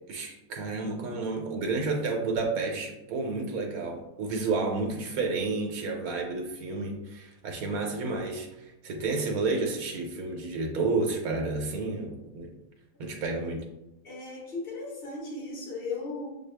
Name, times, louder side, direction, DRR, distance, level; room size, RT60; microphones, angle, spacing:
voice 1, 0.1-12.5 13.0-13.6, right 3 dB, 85° right, 1 dB, 1.2 m, -31 dB
voice 2, 14.0-16.3, left 3 dB, 45° left, -2 dB, 1.3 m, -36 dB
6.9 x 2.3 x 3.3 m, 0.96 s
omnidirectional pair, 1.5 m